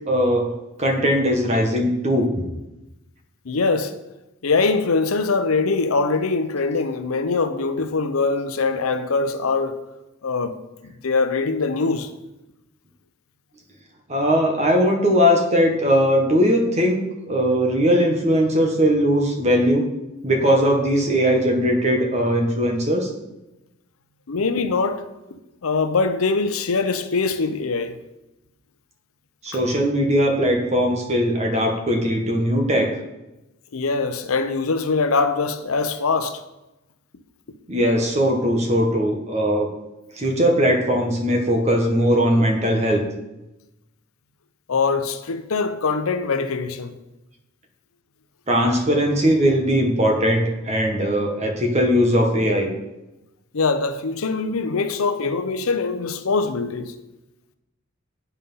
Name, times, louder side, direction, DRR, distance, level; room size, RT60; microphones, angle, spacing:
voice 1, 0.1-0.5 0.8-2.3 14.1-19.8 20.2-23.1 29.4-32.9 37.7-39.7 40.2-43.0 48.5-52.7, equal, 30° right, 1.3 m, -19 dB
voice 2, 3.5-3.9 4.4-9.8 10.2-10.6 10.8-12.1 24.3-25.0 25.3-28.0 33.7-36.4 44.7-47.0 53.5-56.9, left 4 dB, 90° left, 0.7 m, -23 dB
8.3 x 5.7 x 5.6 m
head